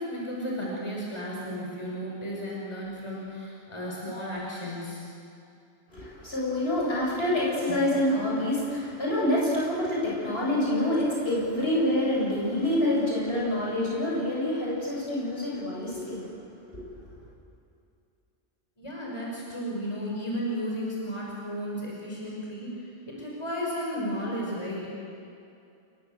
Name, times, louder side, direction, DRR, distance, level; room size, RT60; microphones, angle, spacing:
voice 1, 0.0-5.0 7.7-7.8 18.8-22.7 23.1-24.9, equal, 25° left, -4 dB, 6.0 m, -34 dB
voice 2, 5.9-16.2 16.7-16.8, left 1 dB, 60° left, -5 dB, 8.2 m, -27 dB
28.0 x 23.0 x 8.0 m, 2.5 s
omnidirectional pair, 1.2 m